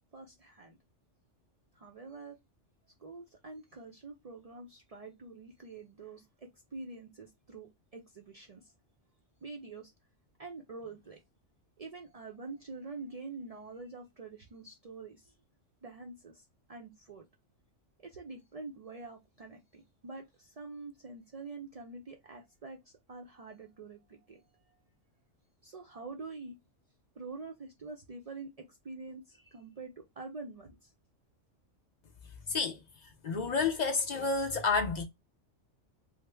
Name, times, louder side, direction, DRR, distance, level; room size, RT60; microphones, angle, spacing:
voice 1, 0.1-0.8 1.8-2.4 3.0-8.7 9.4-9.9 10.4-11.2 11.8-15.3 15.8-17.3 18.0-24.4 25.6-26.6 27.2-30.9, right 3 dB, 70° right, 0.3 m, -46 dB
voice 2, 32.5-32.8 33.2-35.0, left 4 dB, 55° left, 0.4 m, -30 dB
3.2 x 2.0 x 3.3 m
omnidirectional pair, 1.3 m